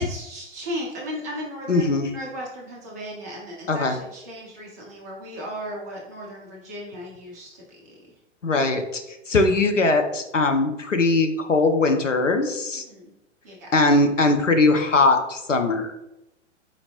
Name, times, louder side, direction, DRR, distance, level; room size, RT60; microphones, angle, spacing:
voice 1, 0.0-8.1 12.8-13.1 13.4-13.7, equal, 15° right, -3 dB, 0.3 m, -36 dB
voice 2, 1.7-2.1 3.7-3.9 8.4-9.0 9.3-12.8 13.7-16.0, left 3 dB, 90° left, 5 dB, 0.6 m, -20 dB
4.3 x 2.6 x 2.9 m, 0.91 s
figure-of-eight pair, 110°, 36 cm